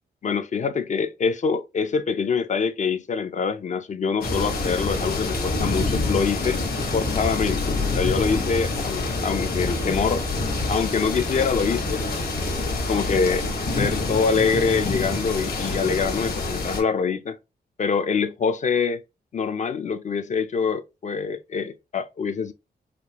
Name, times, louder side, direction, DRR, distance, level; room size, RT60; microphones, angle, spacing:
voice 1, 0.2-6.6 6.9-10.4 10.7-13.5 13.8-17.4 17.8-19.0 19.3-22.5, left 5 dB, 45° left, 0.4 m, -25 dB
sound 1, 4.2-16.8, left 3 dB, 60° left, 1.2 m, -26 dB
4.9 x 2.2 x 2.9 m
wide cardioid pair, 165°, 18 cm